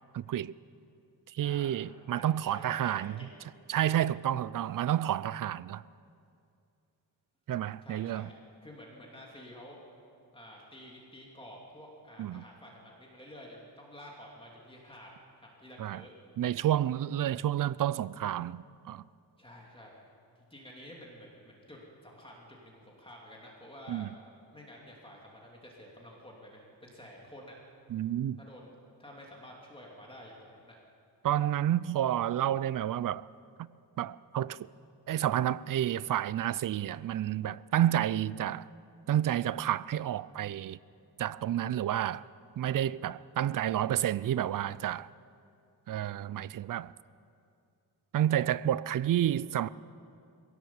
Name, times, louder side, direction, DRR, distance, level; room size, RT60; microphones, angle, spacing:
voice 1, 0.1-0.5 1.3-3.1 3.7-5.8 7.5-8.3 12.2-12.4 15.8-16.0 16.4-19.0 23.9-24.1 27.9-28.4 31.2-33.3 34.0-34.6 35.1-38.7 39.1-40.8 41.2-42.2 42.6-45.1 45.9-46.9 48.1-49.7, right 11 dB, 50° right, 0.5 m, -30 dB
voice 2, 1.4-1.7 2.2-3.3 4.0-4.2 7.8-8.3 8.6-9.8 10.3-15.1 15.4-16.1 19.4-20.1 20.5-24.0 24.5-27.6 28.4-28.7 29.0-30.7 37.7-38.0, equal, 10° left, 2.8 m, -50 dB
22.0 x 17.5 x 7.2 m
wide cardioid pair, 130°, 45 cm